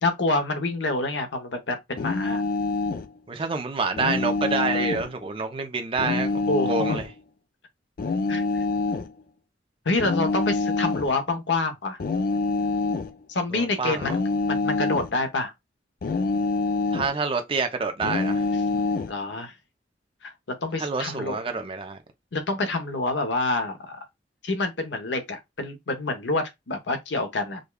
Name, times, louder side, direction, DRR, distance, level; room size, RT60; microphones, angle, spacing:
voice 1, 0.0-2.4 6.5-7.0 8.3-8.6 9.8-12.0 13.3-14.2 14.5-15.5 19.1-19.5 20.2-20.3 20.6-21.4 22.3-24.0 24.4-27.6, left 2 dB, 75° left, 0.8 m, -27 dB
sound 1, 2.0-3.1 4.0-5.1 6.0-7.1 8.0-9.1 10.0-11.1 12.0-13.1 14.0-15.1 16.0-17.1 18.0-19.1, left 3 dB, 50° left, 0.4 m, -26 dB
voice 2, 3.3-7.1 13.5-14.2 16.9-18.4 20.8-22.0, right 4 dB, 30° right, 0.6 m, -28 dB
5.0 x 2.3 x 2.3 m
head